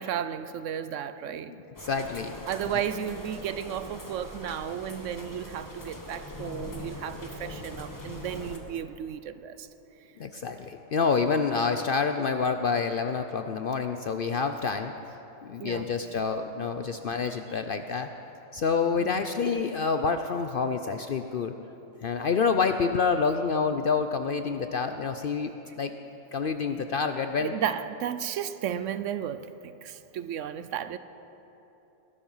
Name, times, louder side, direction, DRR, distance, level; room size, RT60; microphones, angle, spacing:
voice 1, 0.0-1.5 2.5-9.7 15.6-15.9 19.0-19.2 27.4-31.0, right 9 dB, 70° right, 13 dB, 0.9 m, -34 dB
voice 2, 1.5-2.3 10.2-14.9 15.4-18.1 18.5-21.5 22.0-25.9 26.3-27.5, left 5 dB, 60° left, 7 dB, 0.6 m, -28 dB
sound 1, 1.7-8.6, left 1 dB, 15° left, 1.2 m, -42 dB
20.5 x 12.0 x 5.6 m, 3.0 s
omnidirectional pair, 1.4 m